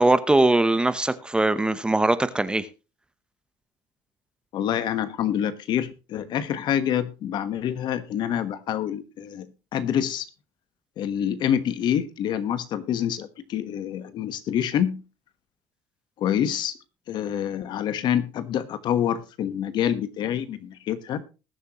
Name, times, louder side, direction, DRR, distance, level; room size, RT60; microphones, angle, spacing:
voice 1, 0.0-2.7, right 2 dB, 10° right, 13 dB, 0.8 m, -21 dB
voice 2, 4.5-9.5 9.7-10.3 11.0-15.0 16.2-16.8 17.1-21.2, left 9 dB, 55° left, 12 dB, 1.3 m, -26 dB
20.5 x 7.4 x 3.0 m, 0.31 s
cardioid pair, 115°, 9 cm